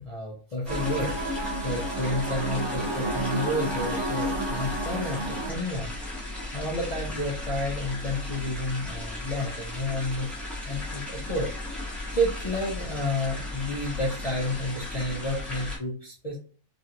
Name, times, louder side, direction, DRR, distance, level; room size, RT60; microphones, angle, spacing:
voice 1, 0.0-5.9 6.5-10.3 10.6-11.5 11.8-16.4, left 1 dB, 60° left, -5 dB, 0.4 m, -31 dB
sound 1, 0.6-15.8, left 1 dB, ahead, 0.6 m, -36 dB
sound 2, 0.7-5.5, right 1 dB, 65° right, 1.2 m, -31 dB
3.0 x 2.6 x 2.8 m, 0.40 s
omnidirectional pair, 1.6 m